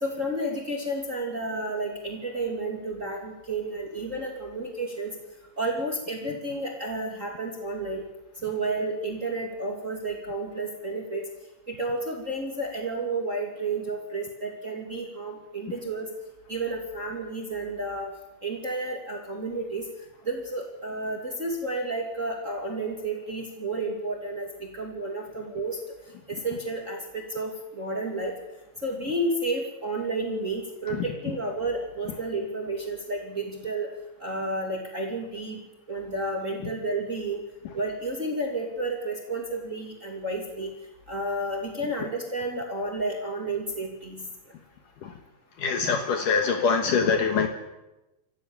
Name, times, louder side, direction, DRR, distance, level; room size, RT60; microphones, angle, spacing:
voice 1, 0.0-5.1 5.6-8.0 8.4-11.2 11.7-16.1 16.5-18.1 18.4-19.8 20.2-25.8 26.3-28.3 28.8-33.9 34.2-35.6 35.9-37.4 37.7-40.7 41.1-44.2, right 2 dB, 20° right, 0 dB, 2.9 m, -31 dB
voice 2, 45.6-47.5, left 5 dB, 65° left, 5 dB, 2.8 m, -23 dB
27.5 x 15.0 x 7.3 m, 0.99 s
omnidirectional pair, 4.3 m